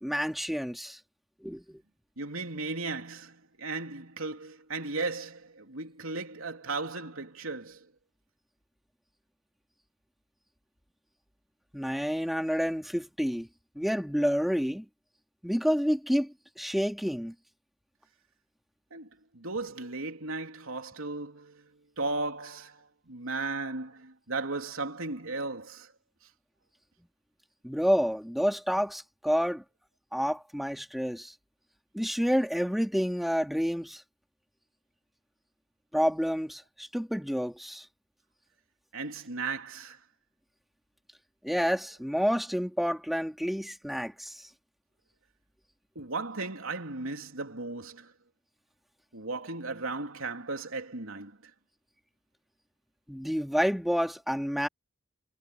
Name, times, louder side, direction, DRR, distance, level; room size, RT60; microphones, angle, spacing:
voice 1, 0.0-1.0 1.4-1.8 11.7-13.5 13.8-14.9 15.4-17.3 27.6-29.6 30.1-31.3 31.9-34.0 35.9-37.8 41.4-44.3 53.1-54.7, equal, ahead, 2.6 m, -29 dB
voice 2, 2.2-7.9 18.9-21.7 22.0-25.9 38.9-40.0 45.9-48.1 49.1-51.4, right 3 dB, 85° right, 3.4 m, -36 dB
head